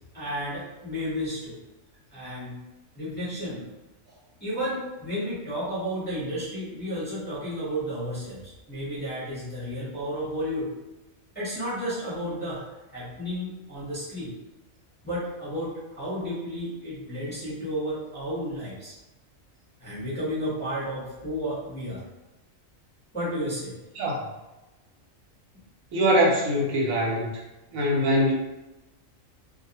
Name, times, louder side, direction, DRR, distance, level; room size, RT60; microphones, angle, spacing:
voice 1, 0.1-1.6 2.1-2.6 2.9-3.6 4.1-10.7 11.3-12.6 12.9-14.3 15.0-18.9 19.8-22.0 23.1-23.8, equal, 10° left, -11 dB, 0.8 m, -32 dB
voice 2, 25.9-27.3 27.7-28.3, equal, 85° right, -2 dB, 1.1 m, -22 dB
2.3 x 2.1 x 2.8 m, 1.0 s
omnidirectional pair, 1.4 m